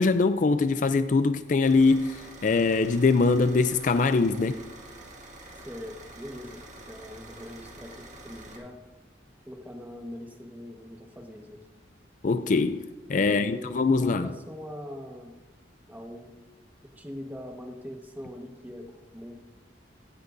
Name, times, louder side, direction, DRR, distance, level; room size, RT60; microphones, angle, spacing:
voice 1, 0.0-4.6 12.2-12.8 13.1-14.3, left 4 dB, 45° left, 0.4 m, -23 dB
sound 1, 1.6-8.6, right 1 dB, 40° right, 1.9 m, -47 dB
voice 2, 5.6-6.6 6.9-8.8 9.5-11.6 13.1-15.4 15.9-16.3 17.0-19.3, left 1 dB, 10° right, 1.3 m, -42 dB
16.0 x 13.5 x 2.6 m
head